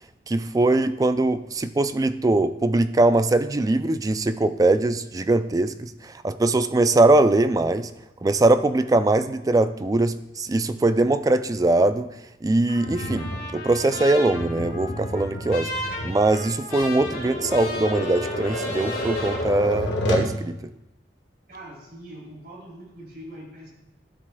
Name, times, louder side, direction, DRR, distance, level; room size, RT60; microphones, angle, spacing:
voice 1, 0.3-7.9 8.2-12.1 12.4-15.7 16.0-20.6, right 2 dB, 20° right, 12 dB, 0.3 m, -21 dB
Trumpet, 12.7-19.4, left 1 dB, 55° left, 2.3 m, -36 dB
Tap, 12.8-20.4, left 1 dB, 80° left, 1.4 m, -31 dB
voice 2, 21.5-23.7, right 1 dB, 55° right, -3 dB, 3.3 m, -42 dB
13.0 x 7.9 x 2.3 m, 0.89 s
head